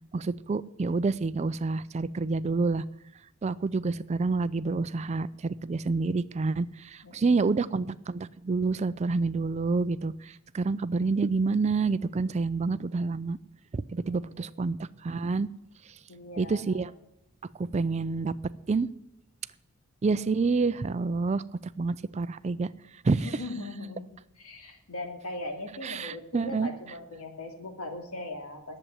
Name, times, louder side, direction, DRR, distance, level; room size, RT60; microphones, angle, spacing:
voice 1, 0.1-2.8 3.4-13.4 13.7-15.5 16.4-16.9 17.6-18.3 18.7-18.9 20.0-22.7 23.0-23.3 25.8-26.7, right 4 dB, 30° right, 16 dB, 0.4 m, -28 dB
voice 2, 7.0-7.5 14.1-14.5 16.1-16.9 23.2-24.0 24.4-28.8, left 2 dB, 85° left, 4 dB, 2.5 m, -39 dB
10.5 x 7.6 x 9.2 m, 0.88 s
head